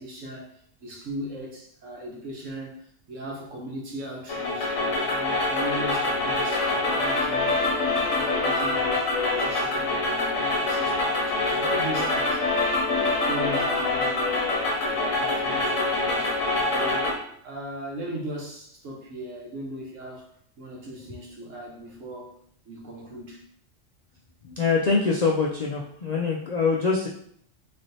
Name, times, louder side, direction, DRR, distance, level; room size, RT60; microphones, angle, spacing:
voice 1, 0.0-4.8 5.1-8.8 9.2-17.1 17.4-20.3 20.6-22.3 22.6-23.4, right 1 dB, 85° right, -1 dB, 1.3 m, -38 dB
sound 1, 4.3-17.1, left 2 dB, 85° left, 1.2 m, -25 dB
voice 2, 24.4-27.1, left 4 dB, 70° left, -2 dB, 0.4 m, -24 dB
3.9 x 3.2 x 2.7 m, 0.64 s
omnidirectional pair, 1.3 m